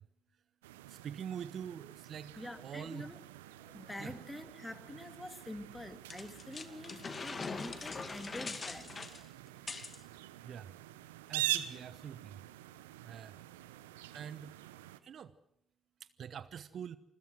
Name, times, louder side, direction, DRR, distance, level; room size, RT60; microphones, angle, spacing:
sound 1, 0.6-15.0, right 15 dB, 80° right, 1.0 m, -44 dB
voice 1, 1.0-2.3 2.6-3.1 4.0-4.1 10.4-10.7 11.3-12.4 13.0-13.3 14.1-14.5 15.0-15.3 16.2-17.0, right 8 dB, 55° right, 15 dB, 1.0 m, -44 dB
voice 2, 2.4-3.2 3.6-8.9, left 1 dB, 10° left, 9 dB, 2.9 m, -46 dB
sound 2, 6.1-10.0, left 4 dB, 35° left, 2.4 m, -42 dB
27.0 x 21.5 x 6.3 m, 0.76 s
figure-of-eight pair, 45°, 0 cm